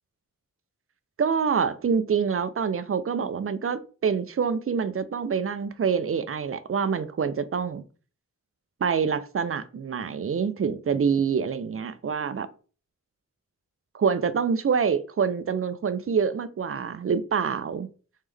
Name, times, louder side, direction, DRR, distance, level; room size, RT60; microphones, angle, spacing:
voice 1, 1.2-7.8 8.8-12.5 13.9-17.9, right 6 dB, 45° right, 0.4 m, -26 dB
3.5 x 3.2 x 3.3 m
wide cardioid pair, 100°, 32 cm